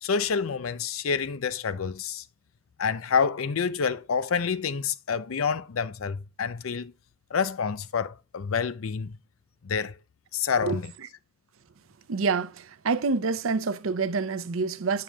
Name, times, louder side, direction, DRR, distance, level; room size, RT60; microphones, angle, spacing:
voice 1, 0.0-2.2 2.8-6.9 7.3-9.2 9.6-9.9 10.3-10.9, left 6 dB, 85° left, 0.5 m, -28 dB
voice 2, 12.1-15.0, right 4 dB, 75° right, 0.6 m, -27 dB
7.5 x 6.7 x 2.2 m
head